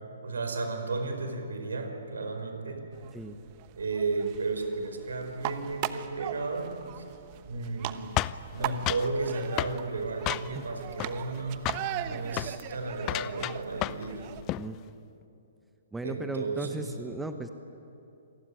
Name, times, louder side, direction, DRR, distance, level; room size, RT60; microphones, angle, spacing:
voice 1, 0.2-2.8 3.8-7.0 7.4-8.1 8.5-11.7 12.0-14.3 16.0-17.0, right 3 dB, 75° right, 5 dB, 4.9 m, -33 dB
sound 1, 2.9-14.4, right 13 dB, 35° right, 1.1 m, -40 dB
sound 2, 8.2-9.1 9.6-9.8 10.3-10.7 11.0-11.4 11.7-11.9 12.3-12.5 13.0-14.1 14.4-14.7, left 18 dB, 30° left, 0.6 m, -32 dB
voice 2, 15.9-17.5, right 2 dB, 5° right, 7 dB, 1.3 m, -36 dB
28.0 x 20.5 x 9.9 m, 2.7 s
figure-of-eight pair, 125°, 0 cm